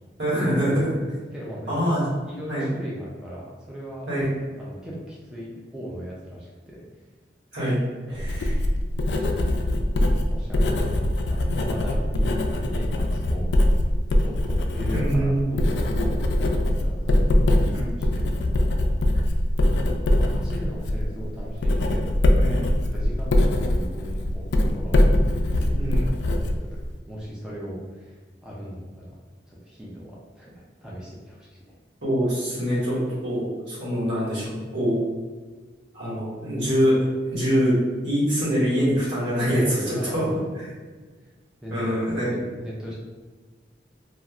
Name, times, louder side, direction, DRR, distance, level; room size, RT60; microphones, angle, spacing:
voice 1, 0.2-1.0 1.7-2.1 2.5-2.7 4.1-4.3 7.5-7.8 8.1-8.5 14.9-15.5 17.7-17.9 22.4-22.6 25.7-26.0 32.0-35.0 35.9-37.0 37.3-37.8 38.0-40.3 41.7-42.3, equal, 75° right, -8 dB, 1.4 m, -24 dB
voice 2, 1.3-2.0 2.2-4.1 4.6-6.8 8.1-8.5 9.1-9.3 10.2-13.6 14.2-17.2 17.6-18.2 18.6-19.0 20.1-22.2 22.4-22.6 22.9-24.9 25.5-26.7 27.1-29.1 29.5-31.8 39.9-40.4 41.6-42.9, equal, 5° right, -6 dB, 0.4 m, -38 dB
Writing, 8.1-27.0, left 1 dB, 65° left, 0.3 m, -22 dB
3.0 x 2.4 x 2.4 m, 1.4 s
head